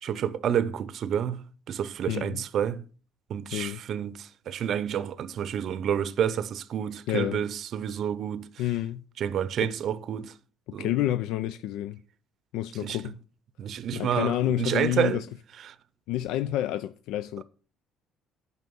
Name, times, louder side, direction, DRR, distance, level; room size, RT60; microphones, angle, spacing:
voice 1, 0.0-2.8 3.3-8.5 9.2-10.3 10.7-10.9 12.8-13.0 13.6-15.2 15.6-15.7, right 9 dB, 45° right, 0.6 m, -29 dB
voice 2, 2.1-2.4 3.5-3.8 7.1-7.4 8.6-9.0 9.6-9.7 10.7-12.0 12.5-13.2 13.9-15.3 16.1-17.4, left 13 dB, 80° left, 0.5 m, -29 dB
9.5 x 5.9 x 6.9 m
cardioid pair, 160°, 0 cm